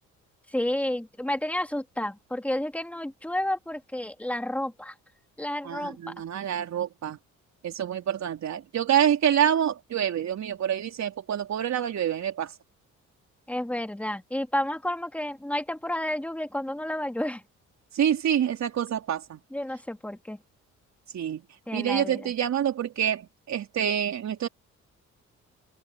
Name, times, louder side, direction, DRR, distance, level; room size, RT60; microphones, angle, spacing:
voice 1, 0.5-4.9 5.4-6.1 13.5-17.4 19.5-20.4 21.7-22.3, left 1 dB, 5° left, 2.3 m, -31 dB
voice 2, 5.6-7.2 7.6-12.5 17.9-19.4 21.1-21.4 21.7-24.5, right 9 dB, 65° right, 4.1 m, -27 dB
cardioid pair, 90°, 30 cm